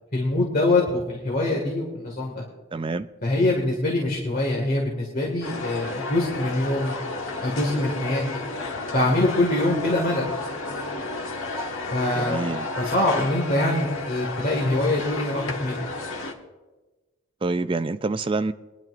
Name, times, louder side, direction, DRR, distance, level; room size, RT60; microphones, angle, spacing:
voice 1, 0.1-2.4 3.2-7.0 7.4-8.2 8.9-10.3 11.9-12.5 12.8-15.9, left 2 dB, 45° left, 1.9 m, -24 dB
voice 2, 2.7-3.1 12.1-12.7 17.4-18.5, right 3 dB, 25° right, 0.3 m, -26 dB
sound 1, 5.4-16.3, left 3 dB, 70° left, 1.4 m, -32 dB
23.5 x 10.5 x 2.5 m
head